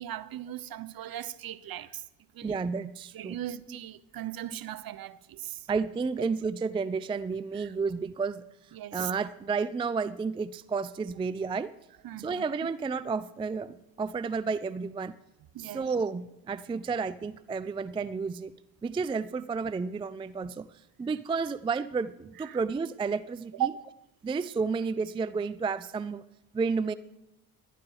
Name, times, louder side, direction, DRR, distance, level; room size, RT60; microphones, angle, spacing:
voice 1, 0.0-2.0 2.3-2.5 3.1-5.6 7.6-7.7 8.7-9.1 12.0-12.4 15.5-15.8 22.4-22.6 23.6-23.9, right 12 dB, 50° right, 0.8 m, -37 dB
voice 2, 2.4-3.4 3.7-3.8 5.7-8.4 8.9-11.7 12.2-15.2 15.6-18.5 18.8-20.7 21.0-23.7 24.2-26.2 26.5-26.9, right 5 dB, 10° right, 0.3 m, -31 dB
11.5 x 10.5 x 4.8 m
hypercardioid pair, 50°, 47 cm